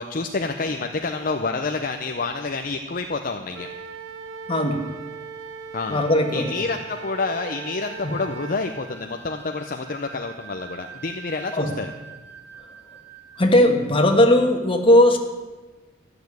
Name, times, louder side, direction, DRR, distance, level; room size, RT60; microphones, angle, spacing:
voice 1, 0.0-3.7 5.7-6.1 6.3-11.9, left 3 dB, 45° left, 5 dB, 0.7 m, -28 dB
Wind instrument woodwind instrument, 3.5-8.7, right 5 dB, 75° right, 0.8 m, -38 dB
voice 2, 4.5-4.9 5.9-6.6 8.0-8.2 11.5-11.7 12.6-12.7 13.4-15.2, left 1 dB, 25° left, 3 dB, 1.6 m, -18 dB
sound 1, 7.4-13.5, right 6 dB, 10° right, 2.4 m, -44 dB
13.5 x 7.0 x 9.4 m, 1.3 s
head